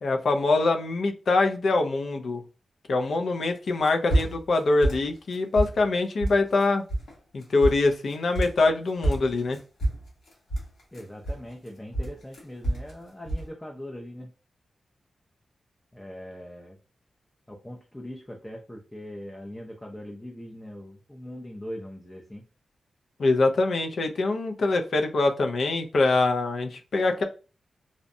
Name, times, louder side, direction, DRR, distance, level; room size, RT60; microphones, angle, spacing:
voice 1, 0.0-2.4 2.9-6.8 7.3-9.6 23.2-27.2, left 3 dB, 70° left, 4 dB, 0.4 m, -24 dB
sound 1, 3.7-4.6 4.8-5.9 6.2-6.6 6.9-7.1 7.4-8.7 9.0-11.7 11.9-12.9 13.2-13.5, right 1 dB, 85° left, 1.0 m, -28 dB
voice 2, 10.9-14.3 15.9-16.8 17.5-22.4, equal, 10° left, 0 dB, 0.4 m, -41 dB
2.6 x 2.1 x 2.6 m, 0.35 s
cardioid pair, 80°, 0 cm